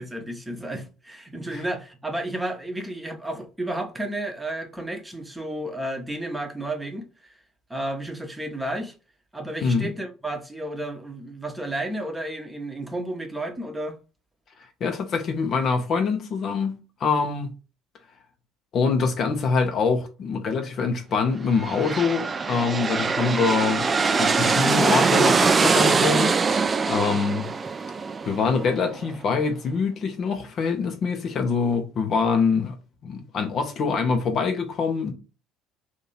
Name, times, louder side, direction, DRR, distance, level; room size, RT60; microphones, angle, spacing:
voice 1, 0.0-7.3 7.7-8.9 9.3-14.0 27.0-27.2, right 1 dB, 10° right, 0.9 m, -32 dB
voice 2, 14.8-17.5 18.7-26.4 26.9-27.5 28.2-32.7 33.0-35.1, left 5 dB, 45° left, 0.7 m, -24 dB
sound 1, 21.5-29.2, right 4 dB, 25° right, 0.3 m, -23 dB
2.9 x 2.7 x 4.0 m
figure-of-eight pair, 55°, 0 cm